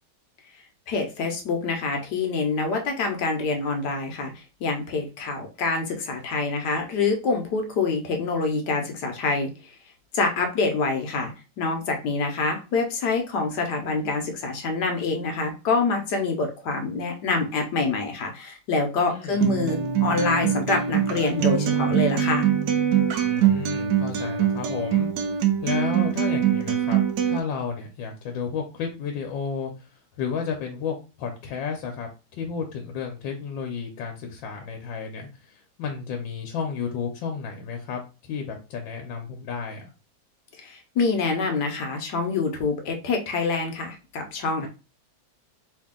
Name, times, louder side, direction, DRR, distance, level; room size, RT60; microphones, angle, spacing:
voice 1, 0.9-9.8 10.1-11.3 11.6-22.5 40.6-44.7, left 4 dB, 70° left, 4 dB, 1.2 m, -26 dB
voice 2, 19.1-19.4 23.2-27.0 27.3-29.7 30.2-39.9 44.6-44.7, left 6 dB, 90° left, 4 dB, 1.4 m, -32 dB
Acoustic guitar, 19.4-27.4, right 9 dB, 75° right, 1.2 m, -23 dB
3.2 x 2.7 x 3.6 m, 0.31 s
omnidirectional pair, 2.0 m